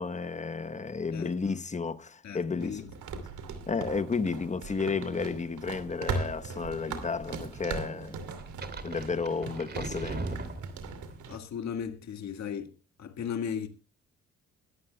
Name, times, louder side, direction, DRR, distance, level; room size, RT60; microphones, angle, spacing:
voice 1, 0.0-2.9 3.7-8.2 8.8-10.2, left 4 dB, 25° left, 1.0 m, -32 dB
voice 2, 1.1-1.6 2.2-2.8 3.1-3.3 11.3-12.7 13.0-13.7, left 7 dB, 65° left, 1.7 m, -36 dB
sound 1, 2.6-11.4, right 4 dB, 75° right, 2.6 m, -39 dB
sound 2, 8.3-11.2, right 3 dB, 35° right, 2.7 m, -38 dB
21.0 x 13.5 x 2.2 m
cardioid pair, 90°, 30 cm